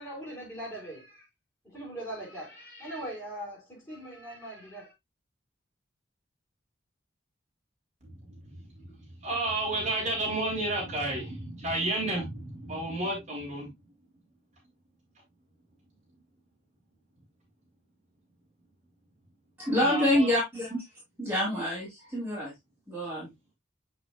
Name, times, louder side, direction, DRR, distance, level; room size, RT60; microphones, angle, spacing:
voice 1, 0.0-1.3 1.6-4.9, right 1 dB, 15° left, 5.2 m, -41 dB
voice 2, 8.0-13.7 19.7-20.4, right 1 dB, 40° right, 3.2 m, -32 dB
voice 3, 19.6-20.8 21.2-22.5 22.9-23.3, left 1 dB, 10° right, 3.6 m, -27 dB
8.0 x 5.9 x 2.4 m
head